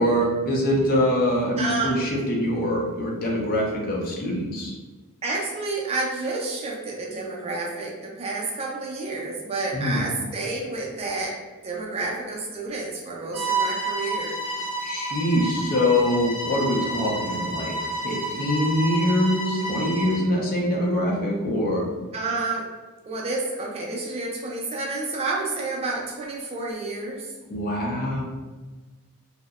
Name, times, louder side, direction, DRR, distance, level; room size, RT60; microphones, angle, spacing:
voice 1, 0.0-4.8 9.7-10.0 14.8-21.8 27.5-28.2, left 1 dB, 40° left, -2 dB, 0.5 m, -24 dB
voice 2, 1.6-2.0 5.2-11.4 11.6-14.3 22.1-22.7 23.1-27.3, right 3 dB, 30° right, -2 dB, 0.4 m, -29 dB
Bowed string instrument, 13.3-20.3, right 2 dB, 55° right, 0.7 m, -30 dB
2.6 x 2.0 x 2.3 m, 1.3 s
head